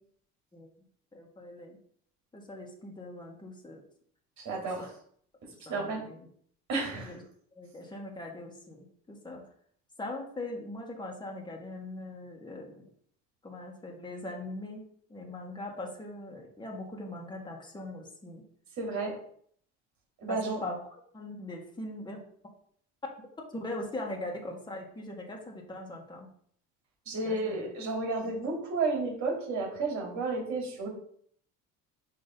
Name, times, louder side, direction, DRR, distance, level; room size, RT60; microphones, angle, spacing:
voice 1, 1.1-1.8 2.3-3.8 4.8-4.9 5.6-6.3 7.0-7.2 7.5-9.4 10.0-12.9 13.4-14.8 15.1-18.4 20.3-20.8 21.1-22.2 23.5-26.3 27.2-27.6 28.2-28.3, left 1 dB, 15° left, 0 dB, 1.7 m, -41 dB
voice 2, 4.4-4.9 5.7-6.0 6.7-7.1 18.8-19.1 20.2-20.6 27.1-30.9, right 3 dB, 60° right, -1 dB, 2.9 m, -32 dB
6.3 x 3.3 x 5.3 m, 0.62 s
cardioid pair, 110°, 32 cm